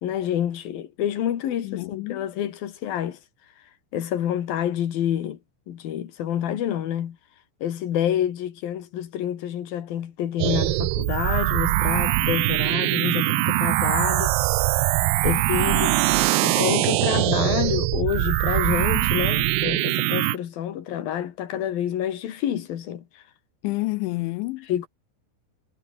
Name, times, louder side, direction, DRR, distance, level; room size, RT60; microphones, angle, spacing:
voice 1, 0.0-3.2 3.9-5.4 5.7-7.2 7.6-14.9 15.2-16.0 16.4-23.0 24.7-24.9, left 10 dB, 55° left, 3.3 m, -28 dB
voice 2, 1.6-2.3 13.2-13.6 23.6-24.7, left 22 dB, 80° left, 2.8 m, -30 dB
sound 1, 10.4-20.4, right 19 dB, 85° right, 2.4 m, -22 dB
omnidirectional pair, 5.6 m